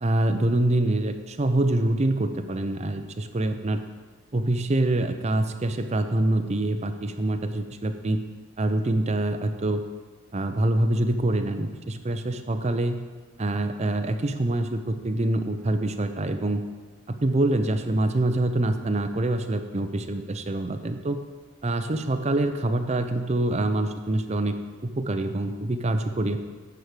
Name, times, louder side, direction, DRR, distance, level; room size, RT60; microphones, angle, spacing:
voice 1, 0.0-3.8 4.3-8.2 8.6-9.8 10.3-13.0 13.4-16.6 17.1-21.2 21.6-24.5 24.8-26.4, right 1 dB, 30° right, 7 dB, 0.5 m, -25 dB
9.3 x 4.7 x 6.7 m, 1.4 s
head